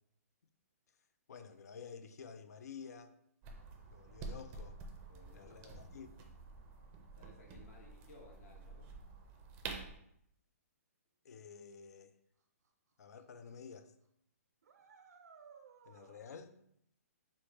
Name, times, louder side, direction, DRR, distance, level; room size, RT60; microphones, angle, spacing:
voice 1, 1.3-3.1 3.9-4.8 5.3-6.1 11.2-12.1 13.0-13.9 15.9-16.6, left 6 dB, 80° left, 0.4 m, -51 dB
sound 1, 3.4-10.0, right 4 dB, 25° right, 0.4 m, -49 dB
voice 2, 5.1-6.0 7.2-8.9, left 2 dB, 60° left, 1.0 m, -60 dB
sound 2, 12.7-12.8 13.2-13.5 13.7-13.8 14.6-16.2, right 6 dB, 80° right, 0.4 m, -59 dB
4.8 x 2.1 x 2.9 m
hypercardioid pair, 145°, 9 cm